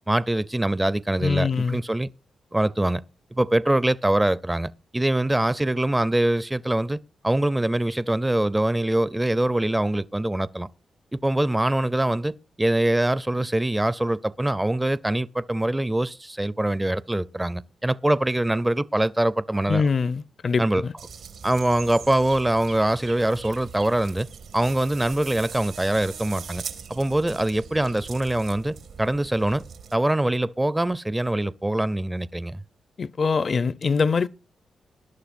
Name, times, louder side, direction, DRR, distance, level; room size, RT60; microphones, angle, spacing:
voice 1, 0.1-2.1 2.5-3.0 3.3-7.0 7.2-10.7 11.1-12.3 12.6-19.9 20.6-20.9 21.4-24.3 24.5-26.6 26.9-29.6 29.9-32.6, right 1 dB, 15° right, 0.5 m, -23 dB
voice 2, 1.2-1.8 19.7-20.9 33.0-34.3, left 5 dB, 50° left, 0.6 m, -23 dB
sound 1, 21.0-29.9, right 6 dB, 85° right, 2.1 m, -41 dB
20.0 x 11.5 x 2.6 m
cardioid pair, 75°, 0 cm